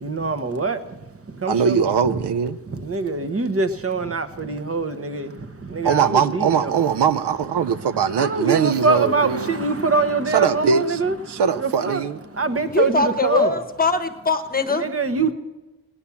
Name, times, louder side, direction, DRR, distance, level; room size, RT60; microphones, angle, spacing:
voice 1, 0.0-0.8 1.4-2.2 2.7-5.3 5.6-6.7 7.6-11.1 11.5-12.0 12.4-13.6 14.7-15.3, right 4 dB, 35° right, 1.1 m, -24 dB
voice 2, 1.5-2.6 5.8-9.5 10.3-11.0 11.3-12.2, right 7 dB, 85° right, 0.7 m, -21 dB
voice 3, 12.7-14.8, left 3 dB, 20° left, 1.1 m, -21 dB
18.0 x 9.9 x 7.1 m
wide cardioid pair, 125°, 39 cm